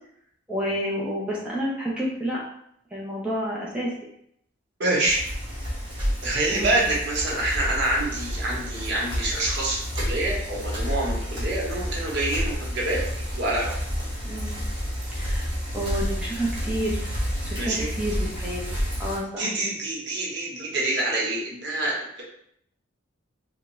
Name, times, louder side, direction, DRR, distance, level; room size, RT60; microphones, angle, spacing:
voice 1, 0.5-2.4 2.9-3.9 6.5-6.7 14.2-14.6 15.1-17.1 17.5-19.5, equal, 5° right, -6 dB, 0.5 m, -30 dB
voice 2, 4.8-5.2 6.2-13.0 13.3-13.7 17.6-17.9 19.4-22.2, right 2 dB, 60° right, -4 dB, 1.0 m, -26 dB
Bicycle, 5.0-19.2, equal, 25° right, 1.1 m, -30 dB
3.4 x 2.2 x 3.0 m, 0.71 s
head